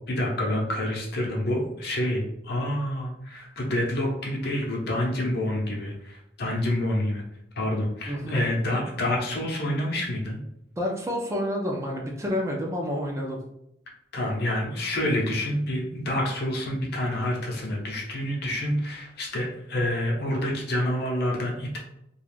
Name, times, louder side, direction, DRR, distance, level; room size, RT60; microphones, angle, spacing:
voice 1, 0.1-7.2 7.6-10.4 14.1-21.8, left 1 dB, 60° left, -1 dB, 0.7 m, -28 dB
voice 2, 8.1-8.4 10.8-13.4, equal, 15° right, -1 dB, 0.4 m, -29 dB
2.4 x 2.3 x 3.3 m, 0.80 s
head